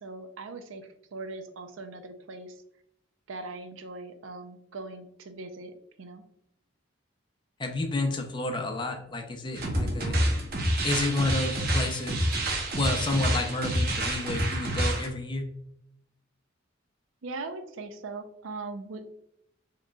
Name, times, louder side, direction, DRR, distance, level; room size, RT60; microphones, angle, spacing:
voice 1, 0.0-2.6 3.3-6.2 17.2-19.1, right 3 dB, 75° right, 7 dB, 0.5 m, -40 dB
voice 2, 7.6-10.5 10.8-12.3 12.8-15.5, left 2 dB, 25° left, 4 dB, 0.4 m, -30 dB
sound 1, 9.5-15.1, right 1 dB, 45° right, 0.7 m, -28 dB
4.7 x 3.0 x 2.3 m, 0.76 s
head